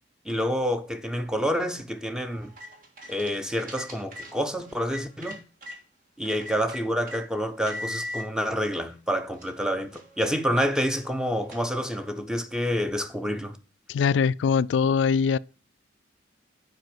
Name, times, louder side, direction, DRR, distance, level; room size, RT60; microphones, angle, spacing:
voice 1, 0.2-2.5 3.1-5.4 6.2-13.6, equal, 5° right, 0.7 m, -28 dB
sound 1, 2.3-5.8 6.2-7.2 7.7-8.2 8.9-9.0 9.3-12.2, left 1 dB, 50° right, 1.7 m, -41 dB
voice 2, 13.9-15.4, left 6 dB, 75° left, 0.3 m, -22 dB
7.8 x 4.9 x 6.1 m
head